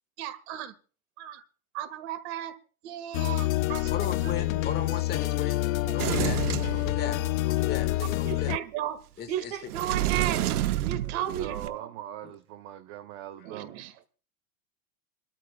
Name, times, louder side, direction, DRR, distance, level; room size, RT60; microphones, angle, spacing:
voice 1, 0.2-0.7 1.2-1.4 1.7-2.5 2.8-3.9 4.2-4.7 5.8-5.9 7.0-7.2 8.0-9.0 9.3-10.5 10.8-11.9 13.4-13.9, right 11 dB, 50° right, 1.7 m, -35 dB
sound 1, 3.1-8.6, left 17 dB, 65° left, 0.7 m, -27 dB
voice 2, 3.9-5.6 5.9-8.5 9.2-9.5 12.2-12.3, left 7 dB, 20° left, 1.5 m, -37 dB
Sliding door, 6.0-7.5 9.7-11.7, right 12 dB, 85° right, 1.2 m, -29 dB
voice 3, 11.2-13.8, right 11 dB, 30° right, 0.6 m, -40 dB
27.0 x 13.0 x 2.2 m
supercardioid pair, 150°, 43 cm